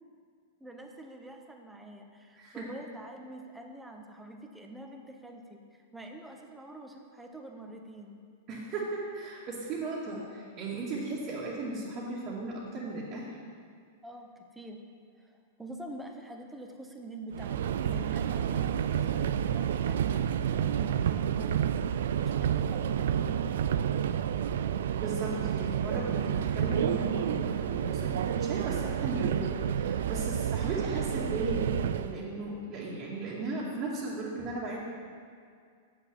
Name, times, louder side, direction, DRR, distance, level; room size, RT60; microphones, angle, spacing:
voice 1, 0.6-8.2 14.0-14.8 15.2-23.8, right 1 dB, 10° right, 3 dB, 1.2 m, -46 dB
voice 2, 2.4-2.7 8.5-13.3 25.0-34.8, right 2 dB, 40° right, -7 dB, 2.2 m, -36 dB
Subway metro underground, 17.3-32.2, right 9 dB, 75° right, 0.4 m, -30 dB
7.9 x 7.1 x 7.1 m, 2.2 s
hypercardioid pair, 115°, 0 cm